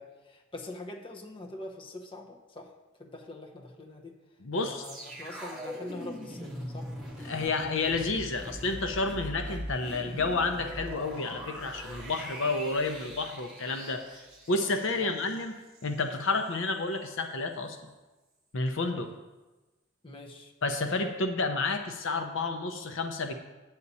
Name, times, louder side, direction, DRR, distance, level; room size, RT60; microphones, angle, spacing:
voice 1, 0.0-2.7 3.0-4.1 4.6-6.9 15.0-15.3 20.0-20.5, left 2 dB, 25° left, 1 dB, 0.8 m, -44 dB
voice 2, 4.4-4.9 7.2-15.5 15.8-17.9 18.5-19.1 20.6-23.3, left 3 dB, 65° left, 6 dB, 0.7 m, -30 dB
sound 1, 4.8-16.0 16.3-16.5, equal, ahead, 1.5 m, -42 dB
8.4 x 8.2 x 4.1 m, 1.1 s
head